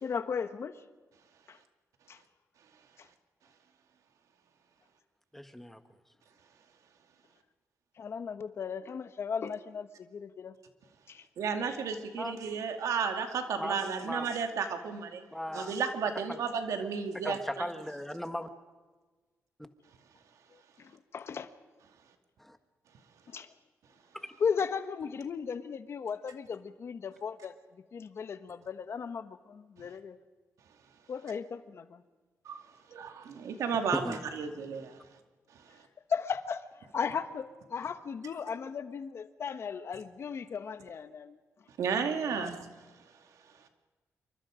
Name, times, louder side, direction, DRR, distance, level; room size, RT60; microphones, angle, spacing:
voice 1, 0.0-0.8 1.5-1.6 2.1-2.2 3.0-3.1 8.0-10.5 11.1-11.3 20.5-21.5 23.3-23.5 24.4-30.2 31.1-32.0 36.1-36.6 36.9-41.4 42.2-42.5, left 6 dB, 55° left, 11 dB, 1.2 m, -36 dB
voice 2, 5.3-5.8 12.2-12.4 13.6-14.3 15.3-15.8 16.3-16.4 17.2-18.5 22.4-22.6 33.9-34.2, left 1 dB, 5° left, 8 dB, 1.5 m, -37 dB
voice 3, 11.4-15.2 15.5-17.6 32.5-32.6 32.9-35.0 41.8-42.7, right 6 dB, 90° right, 5 dB, 2.4 m, -33 dB
27.5 x 24.0 x 5.1 m, 1.3 s
wide cardioid pair, 125°, 5 cm